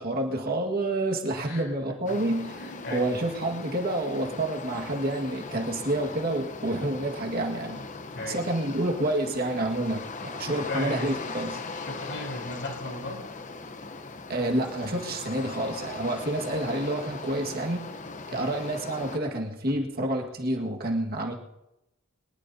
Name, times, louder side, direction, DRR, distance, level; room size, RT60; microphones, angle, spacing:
voice 1, 0.0-2.6 2.9-7.8 8.3-11.6 14.3-17.9 18.3-21.3, right 1 dB, 45° right, 1 dB, 1.8 m, -28 dB
voice 2, 1.4-2.2 2.5-3.1 8.1-8.4 10.4-11.1 11.7-13.3 18.3-18.6, left 2 dB, 60° left, 1 dB, 4.2 m, -37 dB
sound 1, 2.1-19.2, left 3 dB, 35° left, 0.9 m, -39 dB
23.5 x 20.0 x 2.8 m, 0.94 s
head